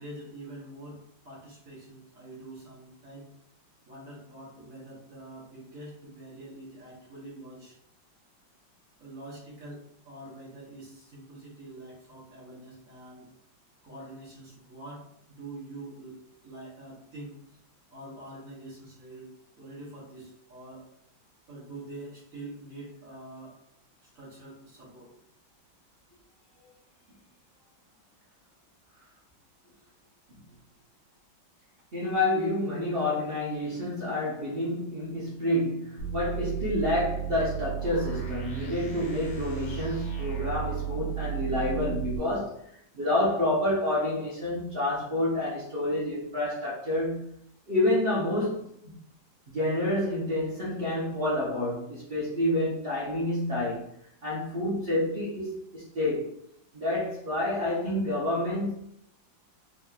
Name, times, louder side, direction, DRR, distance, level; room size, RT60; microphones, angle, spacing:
voice 1, 0.0-3.3 3.8-7.7 9.0-13.3 13.8-17.6 17.9-20.9 21.5-23.6 24.0-25.1 26.6-26.7 27.5-27.6 29.8-29.9, right 2 dB, 50° right, -7 dB, 1.3 m, -45 dB
voice 2, 31.9-47.3 47.7-49.0 49.5-53.9 54.2-56.3 56.7-58.7, left 1 dB, 75° right, -7 dB, 0.5 m, -29 dB
sound 1, 36.0-42.2, right 9 dB, 70° left, 1.5 m, -34 dB
3.9 x 2.9 x 2.4 m, 0.72 s
omnidirectional pair, 2.1 m